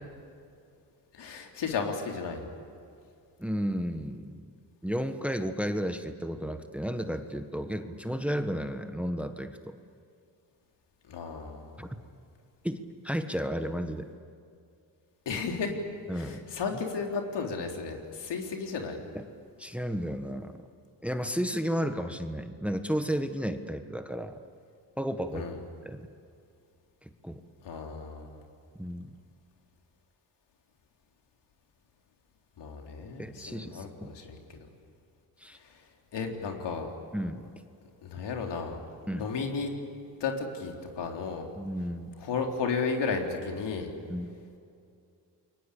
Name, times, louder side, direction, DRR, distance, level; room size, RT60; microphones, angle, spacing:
voice 1, 1.1-2.5 11.1-11.9 15.3-15.7 16.1-19.0 25.3-25.6 27.6-28.4 32.6-34.6 35.6-35.8 36.1-36.9 38.0-38.8 39.1-39.7 40.2-41.5 42.2-43.9, left 5 dB, 75° left, 2 dB, 3.8 m, -34 dB
voice 2, 3.4-4.5 4.8-9.8 11.8-12.0 12.6-14.1 16.1-16.5 19.1-19.2 19.6-20.6 21.0-24.4 25.0-25.5 25.8-26.1 27.0-27.4 28.8-29.1 33.2-34.1 35.4-35.6 37.1-37.5 39.1-39.3 41.5-42.1 44.1-44.3, equal, 5° right, 8 dB, 1.4 m, -33 dB
29.5 x 22.5 x 8.6 m, 2.4 s
cardioid pair, 95°, 42 cm